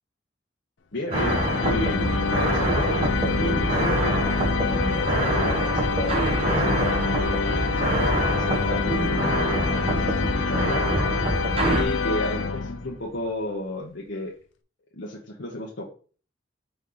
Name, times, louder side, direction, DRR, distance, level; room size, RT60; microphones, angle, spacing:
voice 1, 0.9-2.1 2.5-4.0 4.6-7.2 7.7-10.9 11.6-14.3 15.0-15.8, left 1 dB, 65° left, -2 dB, 1.1 m, -33 dB
sound 1, 1.1-13.1, left 4 dB, 85° left, 0.7 m, -26 dB
sound 2, 1.1-11.8, right 1 dB, 30° right, 1.2 m, -26 dB
5.4 x 4.5 x 3.9 m, 0.39 s
head